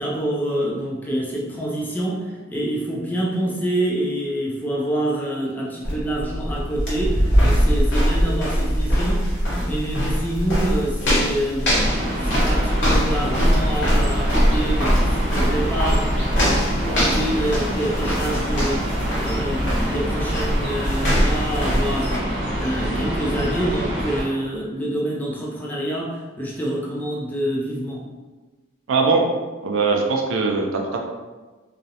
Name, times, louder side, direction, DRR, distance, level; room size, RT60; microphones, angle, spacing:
voice 1, 0.0-16.2 16.4-28.1, right 1 dB, 10° left, -4 dB, 0.3 m, -27 dB
sound 1, 5.8-22.2, equal, 60° left, 0.9 m, -22 dB
sound 2, 11.7-24.2, equal, 55° right, 0.8 m, -26 dB
voice 2, 28.9-29.3 29.6-31.0, right 4 dB, 85° right, 1 dB, 0.4 m, -20 dB
2.4 x 2.0 x 2.7 m, 1.2 s
head